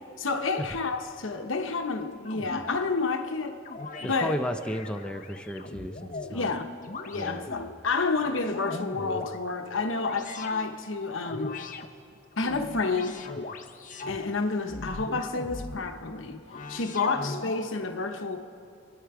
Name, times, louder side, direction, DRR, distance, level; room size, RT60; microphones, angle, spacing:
voice 1, 0.2-3.6 4.0-4.3 6.3-6.7 7.1-11.6 12.4-13.2 14.1-16.4 16.7-18.4, left 4 dB, 75° left, 1.0 m, -29 dB
sound 1, 2.2-2.9 3.6-4.2 4.6-6.4 6.8-7.7 8.2-9.4 10.0-10.6 11.2-11.9 12.3-14.2 14.7-15.9 16.5-17.7, left 2 dB, 40° left, 0.8 m, -39 dB
voice 2, 4.0-6.5 7.1-7.5, equal, 5° left, 0.7 m, -34 dB
27.5 x 9.8 x 4.9 m
head